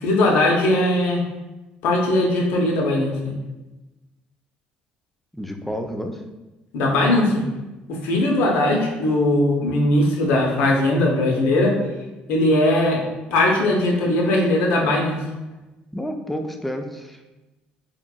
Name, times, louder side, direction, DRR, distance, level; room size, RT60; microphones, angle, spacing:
voice 1, 0.0-1.2 1.8-3.3 6.7-7.4 7.9-11.8 12.3-13.0 13.3-15.2, left 1 dB, 75° left, 0 dB, 0.6 m, -19 dB
voice 2, 5.3-6.2 15.9-17.2, equal, 5° left, 4 dB, 0.3 m, -30 dB
2.9 x 2.5 x 2.3 m, 1.1 s
supercardioid pair, 75°, 4 cm